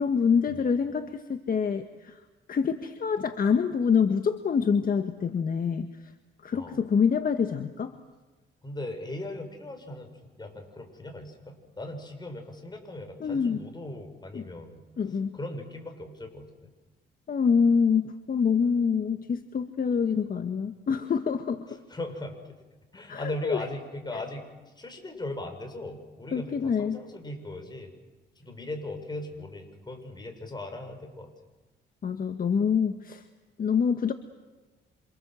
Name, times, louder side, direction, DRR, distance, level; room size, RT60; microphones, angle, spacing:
voice 1, 0.0-2.2 2.5-5.9 6.4-7.9 13.2-13.6 14.3-14.5 15.0-15.4 17.3-21.7 23.1-23.6 24.1-24.2 26.3-27.0 32.0-33.2 33.6-34.1, left 6 dB, 45° left, 7 dB, 1.6 m, -26 dB
voice 2, 8.6-10.1 10.4-14.8 15.3-16.5 21.9-22.4 22.9-24.4 24.8-27.9 28.4-31.3, left 1 dB, 20° left, 5 dB, 6.7 m, -38 dB
28.0 x 26.5 x 7.7 m, 1.2 s
cardioid pair, 90°, 20 cm